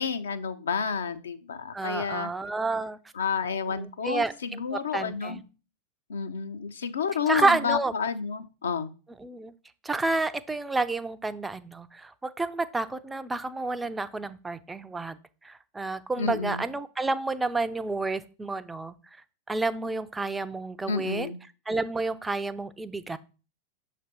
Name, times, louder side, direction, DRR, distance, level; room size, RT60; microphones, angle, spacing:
voice 1, 0.0-2.3 3.1-5.4 6.1-8.9 16.2-16.6 20.9-21.4, left 6 dB, 70° left, 9 dB, 0.6 m, -30 dB
voice 2, 1.7-3.0 3.6-5.4 7.3-7.9 9.2-9.5 9.8-15.2 15.4-18.9 19.5-21.3 21.7-23.2, right 3 dB, 10° right, 12 dB, 0.4 m, -30 dB
6.3 x 3.3 x 4.4 m, 0.34 s
figure-of-eight pair, 90°, 0 cm